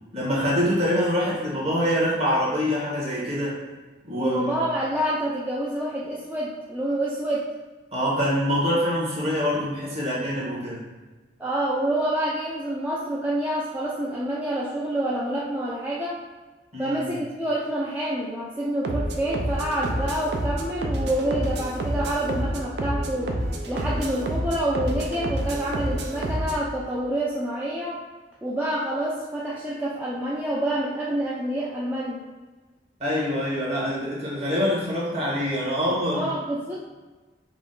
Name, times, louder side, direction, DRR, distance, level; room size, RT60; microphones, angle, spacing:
voice 1, 0.1-3.6 4.0-4.5 7.9-10.8 16.7-17.1 33.0-36.3, equal, 35° right, -6 dB, 1.3 m, -25 dB
voice 2, 4.1-7.5 11.4-16.2 16.8-23.4 23.7-28.0 28.4-32.2 36.1-36.7, right 1 dB, 10° right, -6 dB, 0.4 m, -27 dB
sound 1, 18.8-26.6, right 1 dB, 70° right, 0.5 m, -28 dB
4.9 x 2.2 x 3.9 m, 1.2 s
head